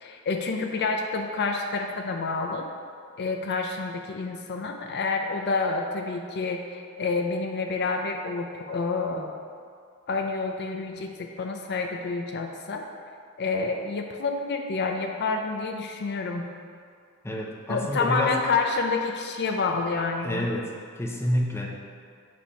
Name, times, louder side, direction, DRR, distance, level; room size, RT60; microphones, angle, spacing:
voice 1, 0.0-2.7 3.2-9.3 10.1-12.8 13.4-16.5 17.7-20.5, left 4 dB, 50° left, 3 dB, 0.5 m, -28 dB
voice 2, 17.2-18.4 20.2-20.7 21.0-21.8, left 1 dB, 10° left, -1 dB, 0.7 m, -28 dB
7.6 x 3.4 x 5.5 m, 2.2 s
head